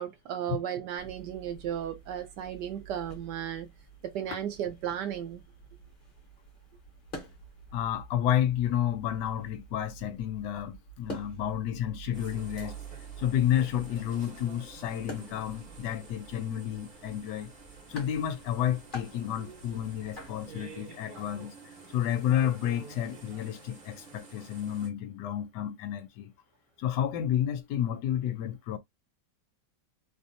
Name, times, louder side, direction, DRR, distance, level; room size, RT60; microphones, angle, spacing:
voice 1, 0.0-3.7 4.0-5.4, right 9 dB, 70° right, 1.1 m, -35 dB
sound 1, 1.0-20.7, right 3 dB, 30° left, 1.2 m, -48 dB
voice 2, 7.7-12.8 13.2-17.5 17.9-21.5 21.9-26.3 26.8-28.8, left 10 dB, 75° left, 1.1 m, -30 dB
sound 2, 12.1-24.9, right 4 dB, 35° right, 0.9 m, -50 dB
3.2 x 2.6 x 2.6 m
omnidirectional pair, 2.1 m